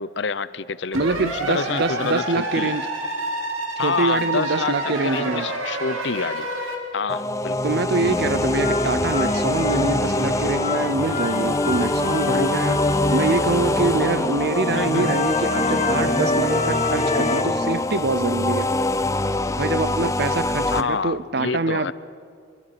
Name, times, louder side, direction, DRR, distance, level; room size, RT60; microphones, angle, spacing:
voice 1, 0.0-2.8 3.8-6.5 6.9-7.8 14.7-15.2 20.7-21.9, left 5 dB, 60° left, 16 dB, 0.6 m, -28 dB
voice 2, 0.9-2.9 3.8-5.5 7.6-12.8 13.1-18.7 19.6-21.9, right 3 dB, 55° right, 15 dB, 0.7 m, -25 dB
sound 1, 0.9-6.8, right 2 dB, 90° right, 3.3 m, -28 dB
sound 2, 7.1-20.8, left 2 dB, 15° left, 0.5 m, -24 dB
sound 3, 8.0-17.4, left 2 dB, 35° left, 1.2 m, -27 dB
24.0 x 22.5 x 6.0 m, 2.3 s
head